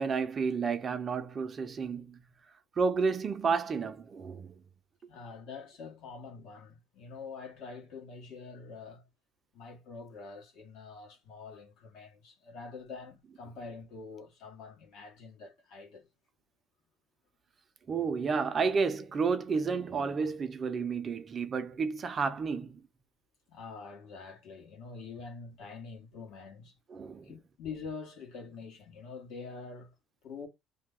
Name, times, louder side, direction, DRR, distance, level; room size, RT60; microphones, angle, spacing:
voice 1, 0.0-2.2 2.8-4.5 17.9-22.8 26.9-27.3, right 5 dB, 35° right, 0.5 m, -31 dB
voice 2, 5.1-9.0 9.5-16.1 23.5-26.7 27.2-29.9 30.2-30.5, left 4 dB, 75° left, 1.3 m, -45 dB
2.8 x 2.2 x 3.7 m
cardioid pair, 125°, 0 cm